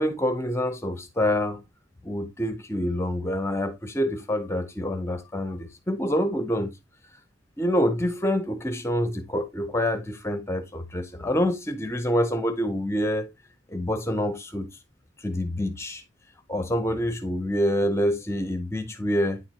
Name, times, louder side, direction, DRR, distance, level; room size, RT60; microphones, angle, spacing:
voice 1, 0.0-1.6 2.0-6.7 7.6-13.3 13.7-14.7 15.2-16.0 16.5-19.4, equal, 15° left, 0.6 m, -26 dB
9.5 x 4.4 x 2.8 m
head